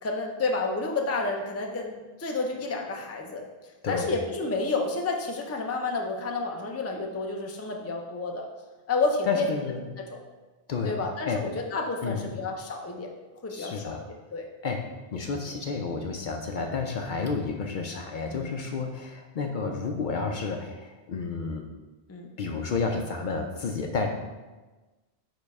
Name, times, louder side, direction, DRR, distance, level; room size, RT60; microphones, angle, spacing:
voice 1, 0.0-3.4 3.9-8.5 8.9-9.5 10.1-10.2 10.8-13.1 13.4-13.8 14.3-14.5 18.3-18.5 22.1-22.3, left 3 dB, 20° left, 1 dB, 0.4 m, -30 dB
voice 2, 9.3-9.9 10.7-11.0 11.3-11.4 12.0-12.4 13.5-14.1 14.6-21.6 22.4-24.1, left 4 dB, 60° left, 3 dB, 0.6 m, -31 dB
5.2 x 4.0 x 4.7 m, 1.2 s
omnidirectional pair, 1.0 m